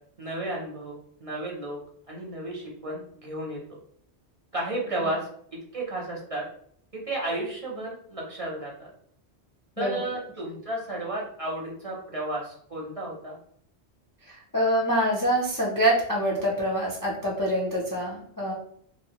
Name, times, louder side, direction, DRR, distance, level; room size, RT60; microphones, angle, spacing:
voice 1, 0.2-1.8 2.1-3.6 4.5-5.3 5.7-6.4 6.9-8.9 9.8-13.4, right 1 dB, 40° right, -3 dB, 0.6 m, -33 dB
voice 2, 14.2-18.5, right 1 dB, 35° left, -4 dB, 0.3 m, -25 dB
3.1 x 2.0 x 2.8 m, 0.64 s
omnidirectional pair, 1.1 m